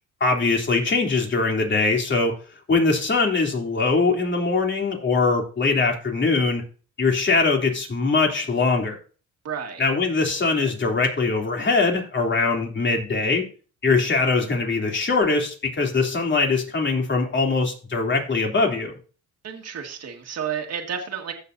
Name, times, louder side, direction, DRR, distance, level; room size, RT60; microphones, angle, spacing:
voice 1, 0.2-2.3 2.7-6.6 7.0-9.0 9.8-13.4 13.8-18.9, left 3 dB, 40° left, 2 dB, 3.1 m, -22 dB
voice 2, 9.4-9.8 19.4-21.3, right 7 dB, 55° right, 2 dB, 1.8 m, -31 dB
15.5 x 6.8 x 2.7 m, 0.37 s
cardioid pair, 90°, 30 cm